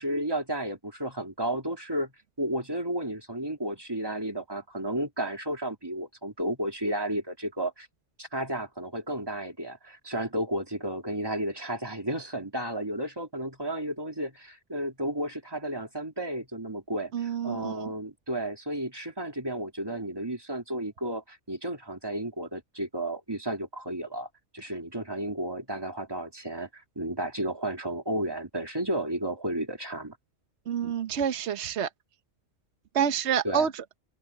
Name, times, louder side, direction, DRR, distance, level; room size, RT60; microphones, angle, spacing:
voice 1, 0.0-2.1 2.4-7.9 8.2-24.3 24.5-30.2 33.4-33.7, right 1 dB, 20° right, 2.5 m, -32 dB
voice 2, 17.1-17.8 30.7-31.9 32.9-33.8, right 8 dB, 70° right, 1.2 m, -28 dB
open air
omnidirectional pair, 1.2 m